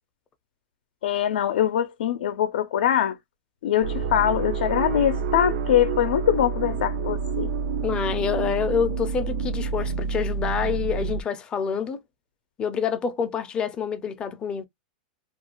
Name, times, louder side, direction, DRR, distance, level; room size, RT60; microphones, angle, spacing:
voice 1, 1.0-3.2 3.6-7.5, left 10 dB, 80° left, 0.5 m, -23 dB
sound 1, 3.8-11.2, right 5 dB, 75° right, 0.5 m, -28 dB
voice 2, 7.8-12.0 12.6-14.7, left 6 dB, 20° left, 0.4 m, -27 dB
2.4 x 2.3 x 3.0 m
supercardioid pair, 155°, 5 cm